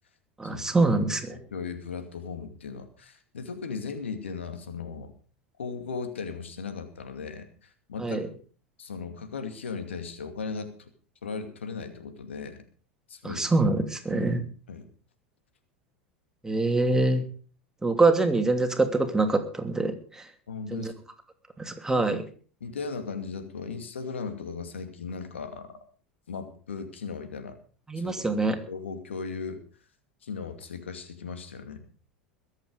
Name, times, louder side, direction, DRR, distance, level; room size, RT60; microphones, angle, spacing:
voice 1, 0.4-1.3 8.0-8.3 13.2-14.4 16.4-17.3 17.8-20.3 20.7-20.9 21.6-22.2 27.9-28.6, right 2 dB, 10° right, 6 dB, 2.8 m, -25 dB
voice 2, 1.3-5.1 5.6-8.3 8.8-10.9 11.2-12.6 13.1-13.5 14.1-14.4 14.7-14.9 20.5-20.9 21.9-22.1 22.6-25.7 26.3-27.6 28.0-28.3 28.7-29.6 30.2-31.8, left 5 dB, 80° left, 8 dB, 2.4 m, -37 dB
22.0 x 8.4 x 5.3 m, 0.41 s
hypercardioid pair, 85°, 6 cm